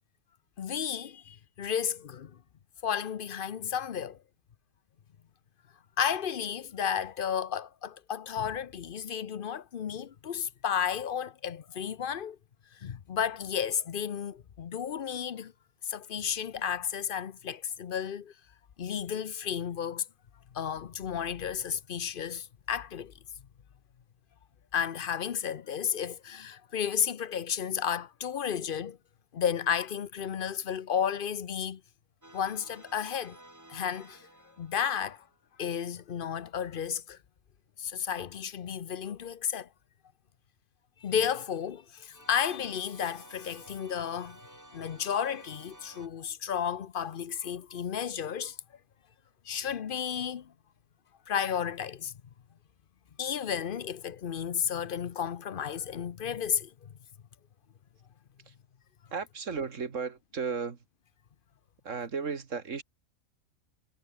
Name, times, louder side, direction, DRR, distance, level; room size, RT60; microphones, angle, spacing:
voice 1, 0.6-2.4 2.8-4.2 6.0-12.4 12.8-15.5 15.8-18.3 18.8-20.0 20.5-23.1 24.7-29.0 29.3-31.8 32.3-33.4 33.7-34.3 34.6-35.2 35.6-37.2 37.8-39.7 41.0-44.4 44.7-48.6 49.4-50.5 51.3-52.1 53.2-56.9, left 8 dB, 45° left, 0.8 m, -32 dB
sound 1, 32.2-35.4 42.1-46.1, right 1 dB, 10° right, 2.1 m, -53 dB
voice 2, 59.1-60.8 61.8-62.8, right 5 dB, 60° right, 2.1 m, -34 dB
omnidirectional pair, 1.5 m